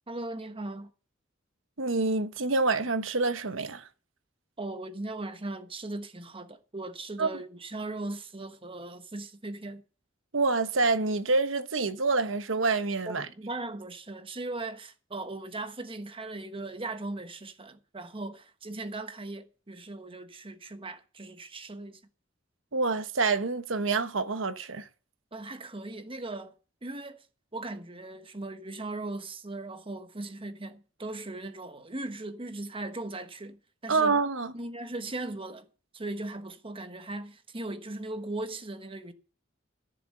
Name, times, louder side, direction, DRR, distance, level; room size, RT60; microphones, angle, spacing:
voice 1, 0.1-0.9 4.6-9.8 13.0-22.0 25.3-26.5 26.8-27.2 27.5-34.2 34.5-35.6 35.9-39.1, right 2 dB, 30° right, 1.2 m, -38 dB
voice 2, 1.8-3.9 7.2-7.3 10.3-13.3 22.7-24.9 33.9-34.5, right 3 dB, 90° right, 1.1 m, -27 dB
15.0 x 6.9 x 6.6 m
head